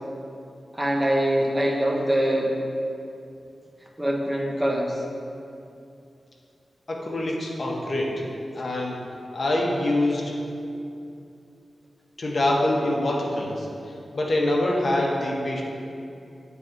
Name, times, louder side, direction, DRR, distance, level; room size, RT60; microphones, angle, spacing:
voice 1, 0.7-2.5 4.0-5.0, equal, 20° right, -1 dB, 0.7 m, -23 dB
voice 2, 6.9-8.2 8.5-9.0 9.3-10.3 12.2-15.6, left 1 dB, 50° left, -2 dB, 0.9 m, -25 dB
8.9 x 3.3 x 3.8 m, 2.6 s
wide cardioid pair, 105°, 0 cm